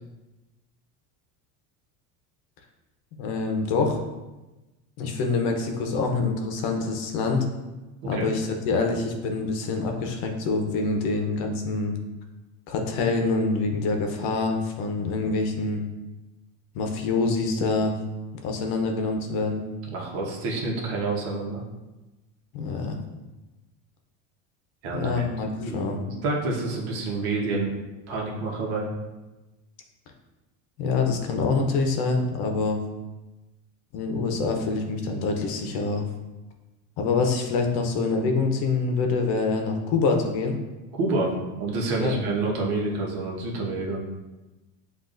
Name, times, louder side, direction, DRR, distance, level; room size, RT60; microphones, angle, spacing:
voice 1, 3.2-4.0 5.0-7.4 8.1-11.9 12.7-15.8 16.7-17.9 18.4-19.6 22.5-23.0 24.9-26.0 30.8-32.8 33.9-36.0 37.0-40.5 42.0-42.1, left 3 dB, 60° left, 3 dB, 0.9 m, -25 dB
voice 2, 8.0-8.3 19.9-21.6 24.8-25.2 25.6-27.7 28.1-28.9 41.0-44.0, right 3 dB, 60° right, -2 dB, 1.3 m, -28 dB
7.9 x 2.6 x 2.6 m, 1.1 s
supercardioid pair, 130°, 42 cm